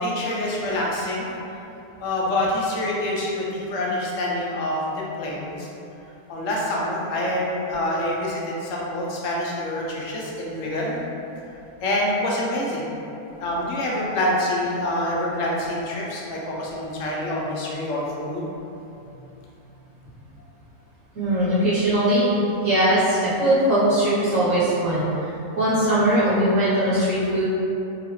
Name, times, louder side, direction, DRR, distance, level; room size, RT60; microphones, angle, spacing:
voice 1, 0.0-1.4 2.0-5.7 6.3-11.0 11.8-12.8 13.4-18.5, left 1 dB, 65° left, -4 dB, 1.0 m, -26 dB
voice 2, 21.1-25.3 25.6-27.4, right 1 dB, 65° right, -11 dB, 1.3 m, -20 dB
3.8 x 3.0 x 3.0 m, 2.9 s
omnidirectional pair, 1.6 m